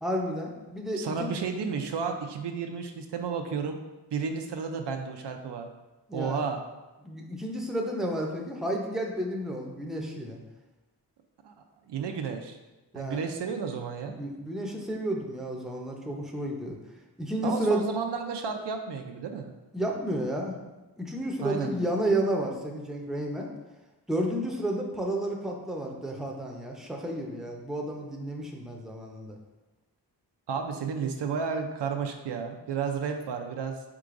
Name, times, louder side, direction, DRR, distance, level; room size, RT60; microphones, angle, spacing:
voice 1, 0.0-1.4 6.1-6.4 7.0-10.4 12.9-13.2 14.1-16.8 17.2-17.9 19.7-20.6 21.0-23.5 24.1-29.4, right 1 dB, ahead, 0 dB, 0.6 m, -31 dB
voice 2, 1.0-3.8 4.1-5.7 6.1-6.6 11.4-11.5 11.9-12.6 12.9-14.1 17.4-19.5 21.4-21.7 30.5-33.8, right 6 dB, 80° right, 4 dB, 0.6 m, -32 dB
4.8 x 3.8 x 2.5 m, 1.1 s
cardioid pair, 75°, 41 cm